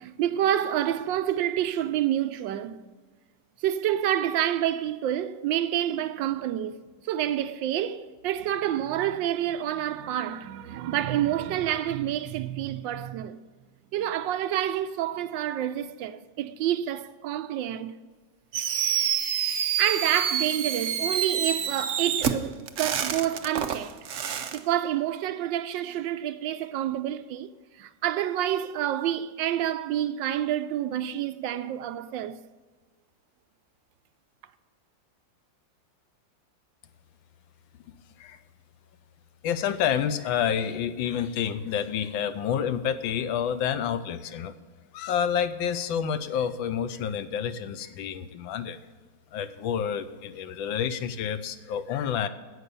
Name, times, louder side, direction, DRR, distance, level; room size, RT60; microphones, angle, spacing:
voice 1, 0.0-2.8 3.6-6.8 7.1-13.4 13.9-17.9 19.8-24.0 24.4-27.5 27.8-32.4, right 11 dB, 75° right, 1.3 m, -28 dB
Fireworks, 18.5-24.6, right 8 dB, 60° right, 0.8 m, -28 dB
voice 2, 37.9-38.4 39.4-44.5 44.9-48.8 49.3-52.3, left 8 dB, 90° left, 1.5 m, -29 dB
11.0 x 8.2 x 6.8 m
omnidirectional pair, 2.1 m